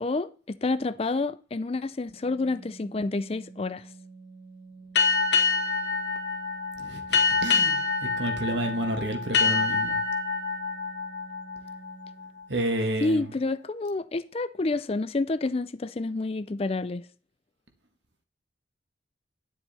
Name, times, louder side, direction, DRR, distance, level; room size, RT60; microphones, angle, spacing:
voice 1, 0.0-3.9 13.0-17.0, left 3 dB, 30° left, 0.4 m, -29 dB
Organ, 2.1-12.7, right 4 dB, 45° right, 2.0 m, -49 dB
sound 1, 5.0-12.2, left 4 dB, 65° left, 1.9 m, -26 dB
voice 2, 6.8-10.0 12.5-13.3, right 1 dB, 65° right, 1.7 m, -30 dB
10.0 x 6.9 x 4.2 m
head